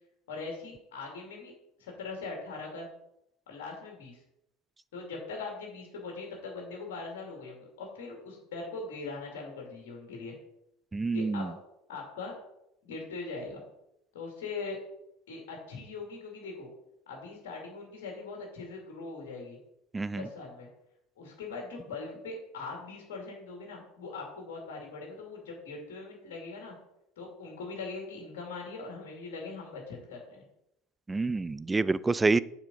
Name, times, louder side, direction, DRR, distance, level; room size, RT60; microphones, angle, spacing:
voice 1, 0.3-1.5 1.8-2.9 3.5-4.2 4.9-10.4 11.1-11.5 11.9-12.3 12.8-13.6 14.1-14.8 15.3-16.7 17.1-19.6 20.1-20.7 21.2-26.7 27.2-30.4, left 3 dB, 65° left, 2.3 m, -41 dB
voice 2, 10.9-11.5 19.9-20.3 31.1-32.4, right 3 dB, 15° right, 0.3 m, -27 dB
7.3 x 5.1 x 5.3 m
figure-of-eight pair, 70°, 0 cm